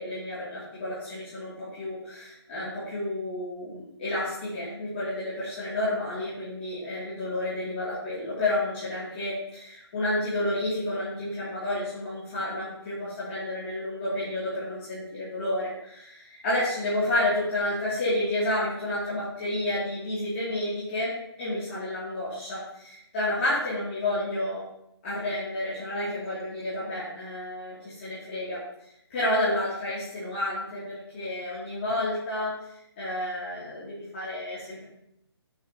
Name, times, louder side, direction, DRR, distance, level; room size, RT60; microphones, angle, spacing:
voice 1, 0.0-21.1 21.4-24.6 25.0-28.6 29.1-32.5 33.0-34.9, left 1 dB, 25° left, -11 dB, 2.6 m, -30 dB
8.0 x 6.5 x 3.0 m, 0.78 s
hypercardioid pair, 170°, 14 cm